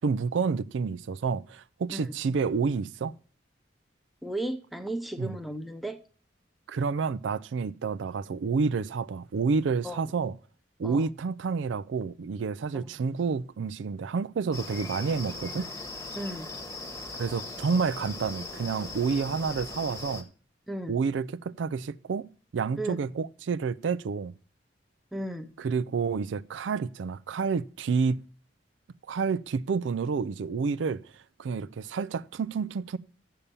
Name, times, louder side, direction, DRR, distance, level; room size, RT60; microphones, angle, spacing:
voice 1, 0.0-3.1 5.2-5.4 6.7-10.3 10.8-15.7 17.2-20.3 20.9-24.3 25.6-28.2 29.1-31.0 31.4-33.0, right 5 dB, 85° right, 0.4 m, -29 dB
voice 2, 4.2-6.0 9.8-10.1 10.8-11.1 12.7-12.9 16.1-16.5 20.7-21.0 22.8-23.1 25.1-25.5, right 1 dB, ahead, 0.7 m, -35 dB
sound 1, 14.5-20.2, left 2 dB, 15° left, 1.1 m, -39 dB
7.2 x 6.8 x 6.8 m
head